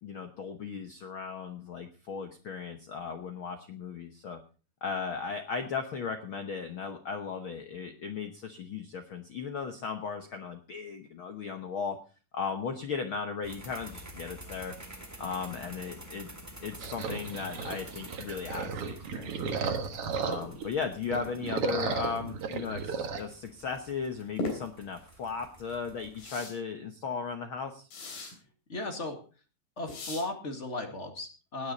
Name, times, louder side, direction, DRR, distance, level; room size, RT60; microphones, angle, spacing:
voice 1, 0.0-4.4 4.8-12.0 12.3-14.7 15.2-16.3 16.6-19.8 20.2-27.9, left 5 dB, 70° left, 7 dB, 1.2 m, -36 dB
sound 1, 13.4-26.3, right 1 dB, 5° right, 1.7 m, -49 dB
sound 2, 16.8-20.7 21.0-23.2, right 5 dB, 55° right, 2.0 m, -34 dB
sound 3, 24.4-24.6 26.2-26.5 27.9-28.3 29.9-30.2, left 3 dB, 90° left, 5.2 m, -36 dB
voice 2, 28.7-29.2 29.8-31.7, left 2 dB, 25° left, 5 dB, 1.8 m, -36 dB
18.5 x 10.0 x 4.0 m, 0.36 s
omnidirectional pair, 3.9 m